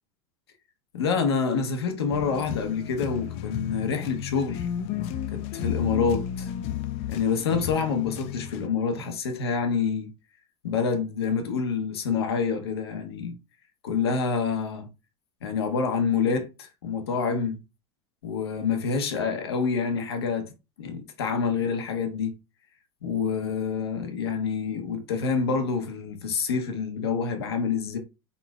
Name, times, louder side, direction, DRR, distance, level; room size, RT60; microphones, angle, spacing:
voice 1, 0.9-4.7 5.3-6.5 7.1-10.1 10.6-13.3 13.8-14.9 15.4-17.6 18.2-20.5 20.8-22.3 23.0-28.0, left 5 dB, 85° left, 1.0 m, -27 dB
sound 1, 2.1-8.7, left 10 dB, 50° left, 0.5 m, -33 dB
4.1 x 4.1 x 2.4 m
hypercardioid pair, 100°, 13 cm